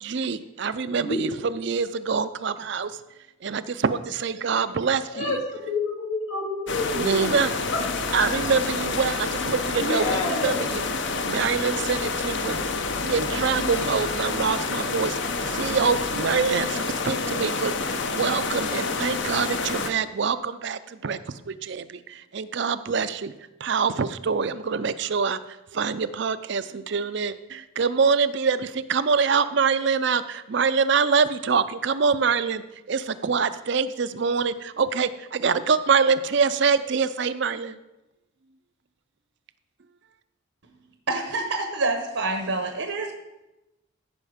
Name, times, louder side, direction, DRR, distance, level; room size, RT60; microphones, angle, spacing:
voice 1, 0.0-2.9 3.4-5.4 7.0-7.5 8.1-10.8 11.2-12.6 13.0-21.2 21.5-23.3 23.6-25.4 25.7-32.6 32.9-37.8, right 5 dB, 55° right, 13 dB, 0.5 m, -25 dB
voice 2, 5.1-7.4 7.7-7.8 8.1-8.3 8.9-9.0 9.8-10.6, left 2 dB, 85° left, -2 dB, 2.2 m, -28 dB
sound 1, 6.7-19.9, left 4 dB, 60° left, 0.8 m, -28 dB
voice 3, 41.1-43.1, right 2 dB, 75° right, 4 dB, 1.0 m, -27 dB
14.5 x 5.5 x 5.0 m, 0.98 s
head